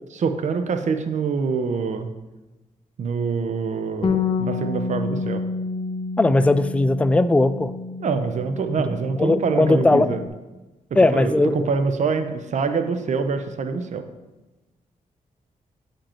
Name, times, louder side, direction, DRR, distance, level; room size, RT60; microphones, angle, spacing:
voice 1, 0.2-2.1 3.0-5.4 8.0-10.2 11.1-14.0, right 5 dB, 55° right, 8 dB, 0.6 m, -25 dB
Bass guitar, 4.0-10.3, left 4 dB, 35° left, 0.7 m, -29 dB
voice 2, 6.2-7.7 9.2-10.1 11.0-11.7, left 2 dB, 10° left, 13 dB, 0.3 m, -18 dB
8.8 x 5.2 x 4.3 m, 1.1 s
cardioid pair, 85°, 15 cm